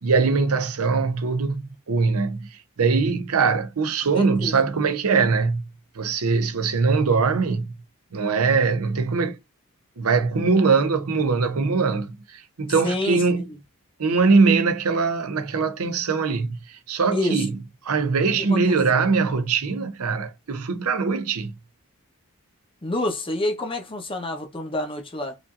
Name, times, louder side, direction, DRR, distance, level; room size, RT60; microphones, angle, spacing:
voice 1, 0.0-1.6 1.9-5.7 6.0-7.8 8.1-9.4 10.0-13.5 14.0-17.5 17.8-21.5, right 4 dB, 80° right, 0.7 m, -22 dB
voice 2, 4.1-4.5 12.8-13.4 17.1-17.4 18.5-19.0 22.8-25.4, left 1 dB, 25° left, 0.8 m, -28 dB
5.0 x 2.6 x 2.4 m
head